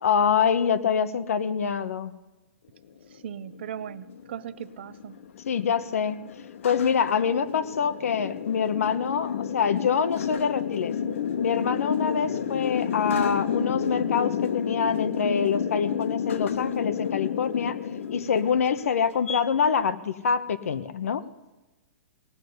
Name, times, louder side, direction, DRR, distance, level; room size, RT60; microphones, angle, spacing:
voice 1, 0.0-2.1 5.5-6.2 6.6-11.0 11.4-17.8 18.1-21.3, left 6 dB, 90° left, 1.0 m, -25 dB
sound 1, 3.0-19.4, left 7 dB, 65° left, 1.0 m, -31 dB
voice 2, 3.2-5.2, right 9 dB, 50° right, 0.6 m, -38 dB
18.0 x 6.6 x 9.5 m
hypercardioid pair, 175°, 8 cm